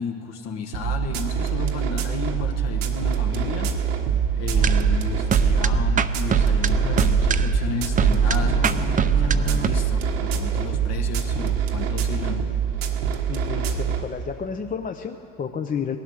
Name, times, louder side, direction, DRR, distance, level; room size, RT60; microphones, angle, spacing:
voice 1, 0.0-3.7 4.4-12.5, left 6 dB, 55° left, 3 dB, 1.4 m, -33 dB
sound 1, 0.7-14.0, right 7 dB, 85° right, 1.4 m, -25 dB
sound 2, 4.5-9.7, right 5 dB, 25° right, 0.6 m, -21 dB
voice 2, 13.3-16.0, left 6 dB, 25° left, 6 dB, 0.7 m, -31 dB
17.5 x 11.5 x 6.4 m, 2.8 s
supercardioid pair, 90°, 31 cm